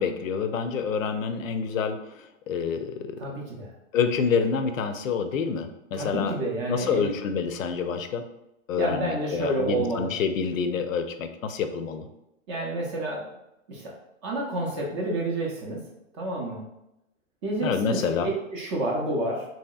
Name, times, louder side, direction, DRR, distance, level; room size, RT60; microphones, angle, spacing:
voice 1, 0.0-3.2 3.9-6.4 6.7-8.2 8.7-12.1 17.6-18.3, left 6 dB, 80° left, 8 dB, 0.5 m, -27 dB
voice 2, 3.2-3.7 5.9-7.1 8.8-10.1 12.5-13.2 13.7-13.9 14.2-15.8 16.1-16.6 17.4-19.4, right 1 dB, 25° right, -2 dB, 0.4 m, -29 dB
2.9 x 2.8 x 2.3 m, 0.87 s
hypercardioid pair, 130°, 39 cm